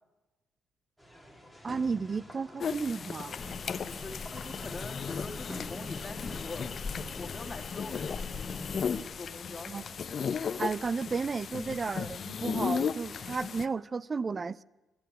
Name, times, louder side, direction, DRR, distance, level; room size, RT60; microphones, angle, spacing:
sound 1, 1.0-7.5, equal, 5° right, 2.6 m, -50 dB
voice 1, 1.6-3.4 9.7-9.8 10.6-14.6, right 4 dB, 35° right, 0.4 m, -33 dB
sound 2, 2.6-13.6, left 6 dB, 50° left, 0.6 m, -36 dB
sound 3, 3.4-9.0, left 4 dB, 35° left, 1.1 m, -41 dB
voice 2, 3.8-6.7 7.2-9.9, left 3 dB, 20° left, 2.3 m, -44 dB
13.0 x 8.6 x 9.3 m
cardioid pair, 90°, 0 cm